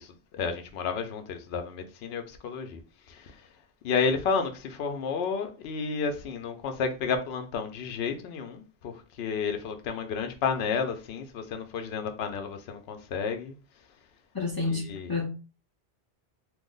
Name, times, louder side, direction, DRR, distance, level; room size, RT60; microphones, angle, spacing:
voice 1, 0.0-2.8 3.1-3.4 3.8-13.6 14.7-15.1, left 5 dB, 75° left, 0.8 m, -31 dB
voice 2, 14.3-15.3, left 3 dB, 30° left, 0.4 m, -29 dB
2.8 x 2.0 x 3.7 m
omnidirectional pair, 1.1 m